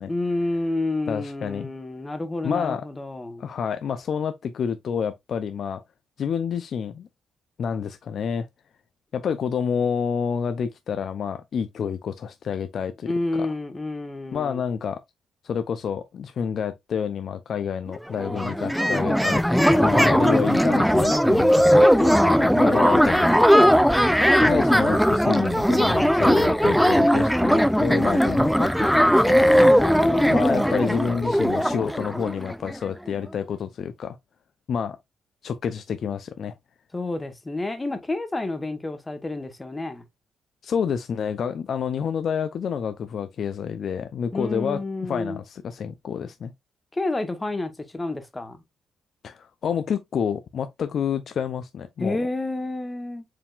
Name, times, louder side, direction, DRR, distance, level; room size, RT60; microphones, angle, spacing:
voice 1, 0.1-3.4 13.1-14.6 19.5-20.5 22.0-23.5 29.8-30.8 36.9-40.0 44.3-45.4 46.9-48.6 52.0-53.2, left 2 dB, 20° left, 1.1 m, -29 dB
voice 2, 1.1-1.7 2.4-2.8 3.4-5.8 6.2-7.1 7.6-8.5 9.1-13.1 13.4-13.5 14.3-15.0 15.4-23.5 24.0-29.6 30.3-34.2 34.7-35.0 35.4-36.5 40.6-46.5 49.2-52.2, left 7 dB, 60° left, 0.4 m, -29 dB
sound 1, 17.9-18.0 18.2-32.8, equal, ahead, 0.5 m, -19 dB
4.7 x 3.6 x 2.4 m
cardioid pair, 85°, 0 cm